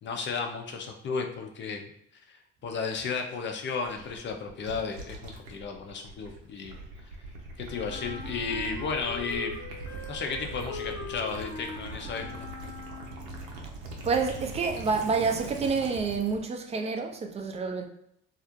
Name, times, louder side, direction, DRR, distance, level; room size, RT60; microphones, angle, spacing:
voice 1, 0.0-1.9 2.3-6.8 7.6-9.6 10.1-12.5, left 5 dB, 35° left, 0.5 m, -34 dB
Gurgling / Liquid, 3.8-16.4, right 2 dB, 80° right, 0.6 m, -42 dB
Wind instrument woodwind instrument, 7.7-13.5, left 4 dB, 60° left, 0.8 m, -41 dB
voice 2, 14.0-17.9, right 4 dB, 20° right, 0.4 m, -28 dB
2.4 x 2.0 x 2.6 m
hypercardioid pair, 75°, 31 cm